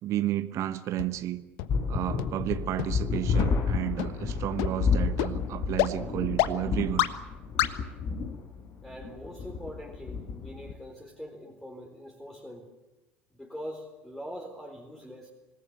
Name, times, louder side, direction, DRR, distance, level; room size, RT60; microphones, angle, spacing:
voice 1, 0.0-1.4 1.9-7.1, right 13 dB, 50° right, 13 dB, 1.1 m, -32 dB
sound 1, 1.0-1.1 1.6-1.7 2.2-2.3 2.8-2.9 3.4-3.5 4.0-4.1 4.6-4.7 5.2-5.3 5.8-5.9 6.4-6.5 7.0-7.1 7.6-7.7, left 17 dB, 60° left, 1.2 m, -25 dB
sound 2, 1.7-10.7, left 5 dB, 45° left, 5.1 m, -30 dB
voice 2, 8.8-12.7 13.3-15.3, equal, 5° left, 1 dB, 4.1 m, -43 dB
26.0 x 19.5 x 8.2 m, 1.1 s
figure-of-eight pair, 65°, 7 cm